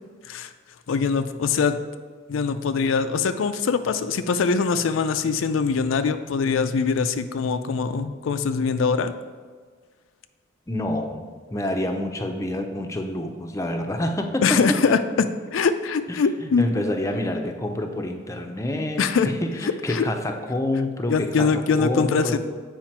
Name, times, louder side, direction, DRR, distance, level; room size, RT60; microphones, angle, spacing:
voice 1, 0.9-1.8 2.3-9.1 14.4-15.3 15.5-16.7 19.0-19.3 19.9-20.1 21.1-22.4, left 5 dB, 85° left, 9 dB, 0.4 m, -22 dB
voice 2, 10.7-11.3 11.5-14.8 16.4-22.4, left 1 dB, 15° left, 4 dB, 0.6 m, -27 dB
7.5 x 4.9 x 4.5 m, 1.5 s
head